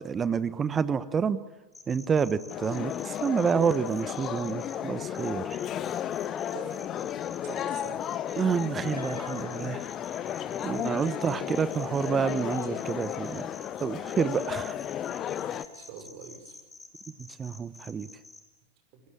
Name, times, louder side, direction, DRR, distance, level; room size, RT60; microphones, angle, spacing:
voice 1, 0.0-1.4 1.9-5.6 8.4-9.8 10.6-13.5 13.8-14.8 17.4-18.1, right 6 dB, 20° right, 16 dB, 1.1 m, -28 dB
sound 1, 1.7-4.8 5.1-18.4, left 3 dB, 10° left, 3.8 m, -48 dB
sound 2, 2.5-15.7, left 10 dB, 30° left, 1.0 m, -34 dB
voice 2, 6.5-6.8 7.4-8.1 10.6-11.4 15.4-16.5 18.9-19.0, right 7 dB, 45° right, 7 dB, 5.7 m, -45 dB
sound 3, 8.9-15.9, left 1 dB, 80° left, 5.5 m, -54 dB
27.5 x 21.5 x 8.8 m, 1.1 s
figure-of-eight pair, 90°, 0 cm